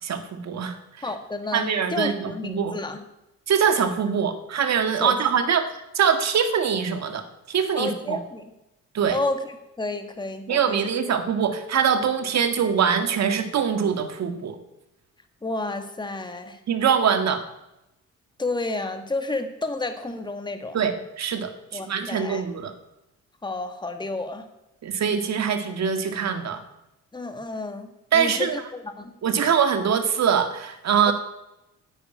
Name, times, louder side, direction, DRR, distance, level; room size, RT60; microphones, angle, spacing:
voice 1, 0.0-1.1 1.5-2.7 3.5-8.2 8.9-9.2 10.5-14.6 16.7-17.4 20.7-22.7 24.8-26.6 28.1-28.6 29.2-31.1, right 7 dB, 60° right, 7 dB, 1.9 m, -23 dB
voice 2, 1.0-3.0 5.0-5.2 7.8-8.4 9.1-10.8 11.0-11.1 15.4-16.6 18.4-20.8 21.7-22.4 23.4-24.5 27.1-29.1 31.1-31.2, left 2 dB, 15° left, 7 dB, 1.6 m, -31 dB
10.0 x 9.5 x 9.1 m, 0.91 s
cardioid pair, 90°, 30 cm